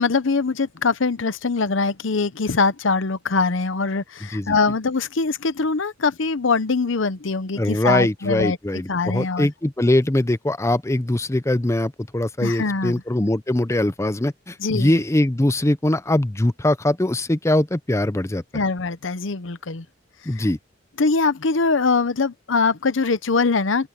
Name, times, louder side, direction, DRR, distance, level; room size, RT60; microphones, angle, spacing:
voice 1, 0.0-8.6 8.9-9.5 12.4-13.0 14.6-15.0 18.5-19.8 20.4-20.5 21.0-23.9, left 4 dB, 70° left, 0.8 m, -22 dB
voice 2, 7.6-18.4 20.3-20.6, left 1 dB, 15° left, 0.6 m, -22 dB
open air
head